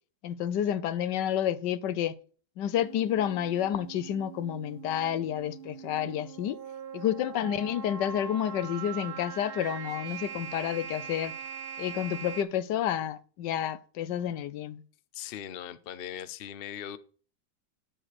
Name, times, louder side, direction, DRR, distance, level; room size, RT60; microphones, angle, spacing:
voice 1, 0.2-2.1 2.6-6.6 6.9-11.3 11.8-14.8, left 10 dB, 80° left, 1.3 m, -30 dB
sound 1, 2.8-12.4, right 7 dB, 55° right, 0.6 m, -42 dB
voice 2, 15.1-17.0, left 10 dB, 60° left, 0.6 m, -39 dB
10.0 x 7.4 x 4.7 m
omnidirectional pair, 1.9 m